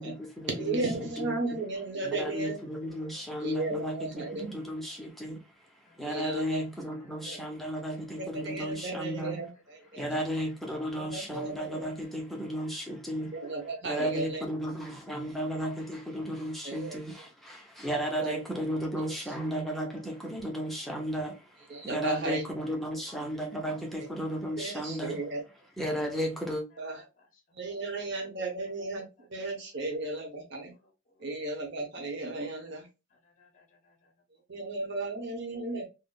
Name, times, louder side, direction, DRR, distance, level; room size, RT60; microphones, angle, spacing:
voice 1, 0.0-1.4 2.0-5.4 6.0-9.4 10.0-13.4 13.8-25.2 25.8-26.6, equal, ahead, 0.6 m, -34 dB
voice 2, 0.6-2.6 3.4-4.5 6.0-6.6 7.3-7.4 8.2-10.1 11.0-11.9 13.3-14.4 16.6-17.0 18.2-18.4 19.0-19.1 21.7-22.4 24.6-25.4 26.8-27.0 27.5-30.7 31.2-32.9 34.5-35.8, right 2 dB, 60° right, 0.9 m, -35 dB
voice 3, 2.9-3.2 5.9-6.1 6.4-6.5 7.0-7.2 8.1-8.2 9.9-10.0 11.9-13.0 13.7-13.8 19.0-19.1 19.6-20.0 27.0-27.4 27.7-28.3 29.4-29.5 29.8-29.9 30.8-31.3 33.1-34.1 34.6-34.7, left 3 dB, 40° left, 0.7 m, -62 dB
3.6 x 2.1 x 2.3 m
head